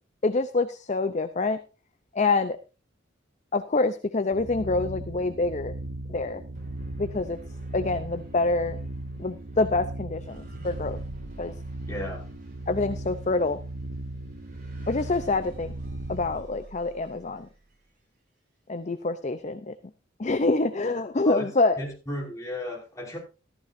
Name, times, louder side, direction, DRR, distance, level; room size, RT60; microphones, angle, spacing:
voice 1, 0.2-1.6 2.1-2.6 3.5-5.7 6.1-6.4 7.0-7.4 7.7-8.8 9.2-11.0 11.4-11.5 12.7-13.6 14.9-15.7 16.1-17.5 18.7-19.7 20.2-21.8, left 3 dB, 35° left, 11 dB, 0.6 m, -26 dB
sound 1, 4.3-16.4, right 2 dB, 75° right, 1.2 m, -37 dB
sound 2, 6.5-17.8, right 1 dB, 40° right, 6.7 m, -49 dB
voice 2, 11.9-12.2 21.2-21.5 21.8-23.2, left 1 dB, 15° left, -2 dB, 5.5 m, -34 dB
14.5 x 13.5 x 2.6 m, 0.32 s
head